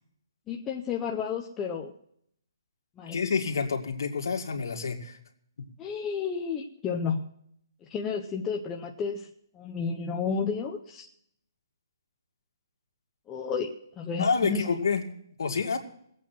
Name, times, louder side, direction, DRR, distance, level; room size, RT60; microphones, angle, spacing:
voice 1, 0.5-1.9 3.0-3.2 5.8-7.2 7.9-9.3 9.5-11.1 13.3-13.7 14.0-14.6, left 6 dB, 10° left, 1 dB, 0.6 m, -31 dB
voice 2, 3.1-5.2 5.6-5.7 14.2-15.0 15.4-15.8, left 5 dB, 60° left, 3 dB, 2.2 m, -28 dB
20.0 x 8.4 x 6.0 m, 0.67 s
hypercardioid pair, 180°, 2 cm